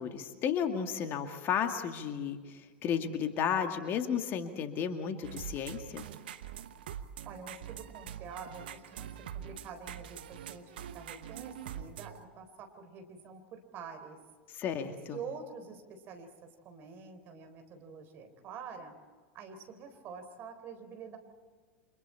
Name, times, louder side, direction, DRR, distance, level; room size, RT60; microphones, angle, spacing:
voice 1, 0.0-6.0 14.5-15.2, left 8 dB, 40° left, 6 dB, 2.1 m, -33 dB
sound 1, 5.2-12.2, right 9 dB, 65° right, 1.1 m, -44 dB
voice 2, 7.2-9.1 9.3-14.2 15.1-18.9 19.3-21.2, right 5 dB, 40° right, 6 dB, 4.0 m, -47 dB
29.5 x 26.0 x 4.4 m, 1.5 s
figure-of-eight pair, 85°, 6 cm